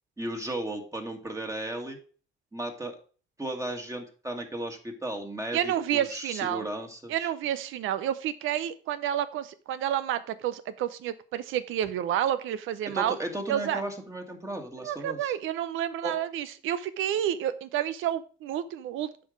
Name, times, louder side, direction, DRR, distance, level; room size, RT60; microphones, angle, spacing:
voice 1, 0.2-2.0 2.5-3.0 3.4-7.3 12.9-15.3 16.0-16.2, right 1 dB, 15° right, 3 dB, 1.8 m, -35 dB
voice 2, 5.5-6.6 7.1-13.2 13.5-13.8 14.8-19.1, right 11 dB, 90° right, 14 dB, 0.7 m, -30 dB
7.8 x 4.6 x 5.0 m, 0.39 s
cardioid pair, 90°, 20 cm